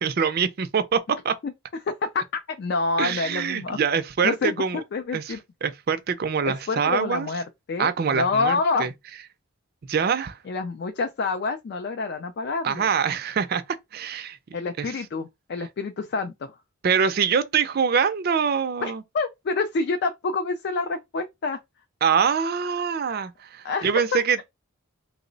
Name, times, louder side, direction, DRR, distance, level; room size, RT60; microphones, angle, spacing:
voice 1, 0.0-1.4 3.0-4.8 5.1-7.3 7.8-8.9 9.9-10.4 12.6-14.4 14.8-14.9 16.8-19.0 22.0-24.4, right 6 dB, 45° right, 0.4 m, -24 dB
voice 2, 1.9-3.8 4.2-5.4 6.5-7.4 7.7-8.9 10.5-12.9 14.5-16.5 18.8-21.6 23.6-24.4, left 4 dB, 50° left, 0.3 m, -27 dB
3.0 x 2.0 x 3.8 m
head